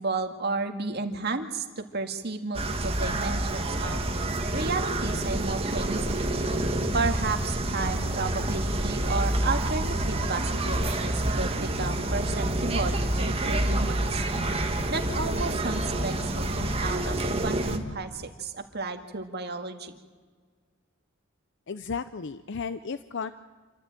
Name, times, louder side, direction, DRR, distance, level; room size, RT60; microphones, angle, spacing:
voice 1, 0.0-4.0 4.5-6.3 6.9-14.2 14.9-17.2 17.4-19.9, right 3 dB, 55° right, 5 dB, 1.9 m, -33 dB
sound 1, 2.5-17.8, right 1 dB, 30° right, 1.7 m, -28 dB
sound 2, 6.1-7.9 8.3-10.9 11.3-13.9 14.3-16.9 17.3-18.0, left 1 dB, 40° left, 1.3 m, -42 dB
Wind instrument woodwind instrument, 7.9-11.9, right 2 dB, 10° right, 6.8 m, -53 dB
voice 2, 21.7-23.3, left 5 dB, 65° left, 12 dB, 0.6 m, -34 dB
27.5 x 13.5 x 9.0 m, 1.6 s
head